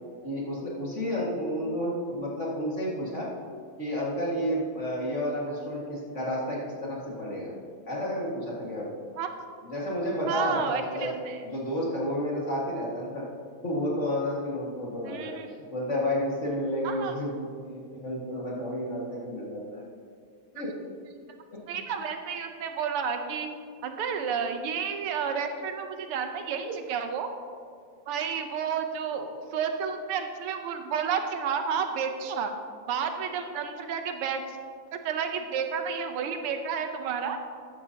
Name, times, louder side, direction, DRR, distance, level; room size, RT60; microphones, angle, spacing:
voice 1, 0.2-3.3 3.8-7.5 7.9-8.9 9.6-11.1 11.4-13.2 13.6-15.3 15.7-19.8 20.5-20.7, equal, 35° left, -5 dB, 2.1 m, -31 dB
voice 2, 10.3-11.4 15.0-15.6 16.8-17.2 21.7-23.5 23.8-27.3 28.1-32.5 32.9-34.6 34.9-37.4, right 6 dB, 85° right, 6 dB, 1.8 m, -31 dB
14.0 x 11.0 x 2.9 m, 2.1 s
omnidirectional pair, 2.4 m